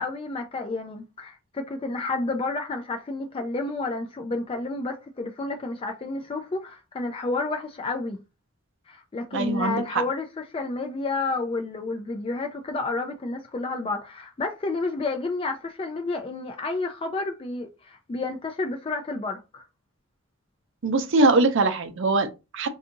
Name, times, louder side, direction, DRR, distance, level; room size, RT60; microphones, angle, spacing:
voice 1, 0.0-8.2 8.9-19.6, left 3 dB, 25° left, 0.3 m, -30 dB
voice 2, 9.3-9.8 20.8-22.7, right 2 dB, 60° right, 0.5 m, -22 dB
2.7 x 2.4 x 3.7 m
head